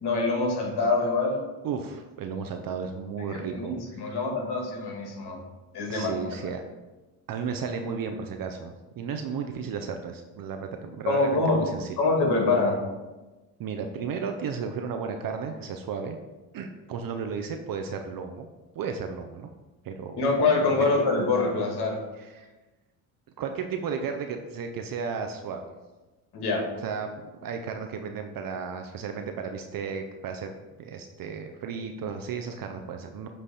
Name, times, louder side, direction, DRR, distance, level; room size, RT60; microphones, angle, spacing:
voice 1, 0.0-1.4 3.3-5.4 5.7-6.1 6.4-6.5 11.1-11.6 12.0-12.8 20.2-22.0 26.3-26.7, left 3 dB, 50° left, 1 dB, 1.9 m, -25 dB
voice 2, 1.6-4.2 5.9-6.6 7.3-12.0 13.6-16.2 16.5-18.5 18.8-19.5 19.8-20.2 20.7-20.9 22.1-22.5 23.4-25.7 26.8-33.3, right 6 dB, 45° right, 5 dB, 0.6 m, -34 dB
7.5 x 3.3 x 4.1 m, 1.1 s
hypercardioid pair, 70°, 49 cm